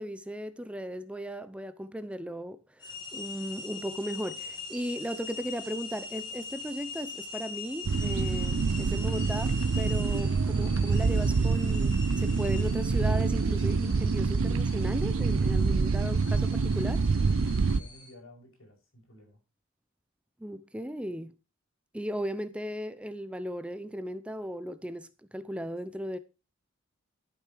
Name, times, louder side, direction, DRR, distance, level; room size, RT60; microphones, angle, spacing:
voice 1, 0.0-17.0 20.4-21.3 21.9-26.2, equal, 5° right, 0.5 m, -36 dB
sound 1, 2.8-18.1, left 4 dB, 20° left, 2.5 m, -43 dB
sound 2, 7.8-17.8, right 4 dB, 80° right, 0.6 m, -26 dB
voice 2, 17.2-19.4, equal, 80° left, 6.5 m, -53 dB
12.5 x 7.0 x 4.6 m
head